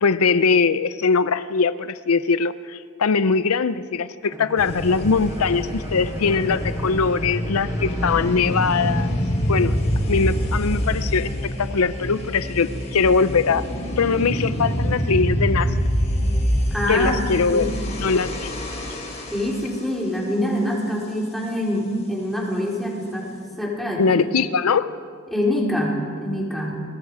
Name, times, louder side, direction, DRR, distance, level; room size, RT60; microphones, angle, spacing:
voice 1, 0.0-9.2 9.5-9.7 10.1-13.6 14.0-15.7 16.9-17.7 18.0-18.5 24.0-24.9, left 5 dB, 85° left, 14 dB, 0.6 m, -21 dB
Bowed string instrument, 4.2-8.5, equal, 15° right, 1.3 m, -39 dB
sound 1, 4.6-19.8, equal, 30° left, 5.0 m, -25 dB
voice 2, 16.7-17.2 17.5-17.7 19.3-23.3 23.6-24.2 25.3-26.8, left 1 dB, ahead, -3 dB, 4.2 m, -25 dB
29.5 x 22.0 x 4.9 m, 2.2 s
head